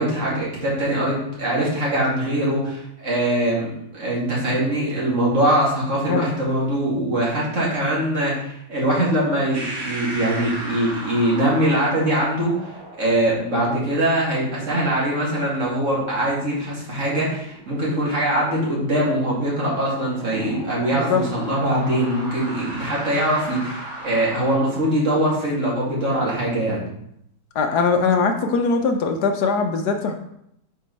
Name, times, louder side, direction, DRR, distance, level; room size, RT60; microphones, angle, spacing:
voice 1, 0.0-12.5 13.0-26.8, right 1 dB, 40° right, -5 dB, 2.6 m, -22 dB
sound 1, 9.5-24.6, right 1 dB, 85° right, 3.2 m, -37 dB
voice 2, 20.9-21.2 27.5-30.2, left 4 dB, 65° left, 5 dB, 1.2 m, -21 dB
8.6 x 4.8 x 4.0 m, 0.75 s
omnidirectional pair, 2.1 m